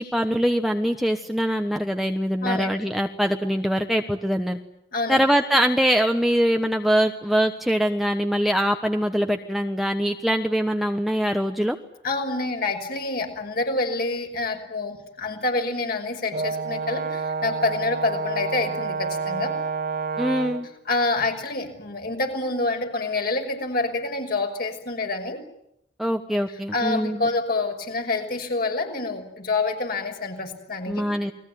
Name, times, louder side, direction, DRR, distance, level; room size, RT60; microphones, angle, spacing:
voice 1, 0.0-4.6 5.1-11.8 20.2-20.7 26.0-27.3 30.9-31.3, equal, ahead, 4 dB, 1.2 m, -23 dB
voice 2, 2.4-2.9 4.9-5.2 12.0-19.5 20.9-25.4 26.7-31.1, left 3 dB, 55° left, 4 dB, 5.9 m, -27 dB
Brass instrument, 16.3-20.7, right 4 dB, 55° right, 2.1 m, -29 dB
29.5 x 21.0 x 9.4 m, 0.78 s
head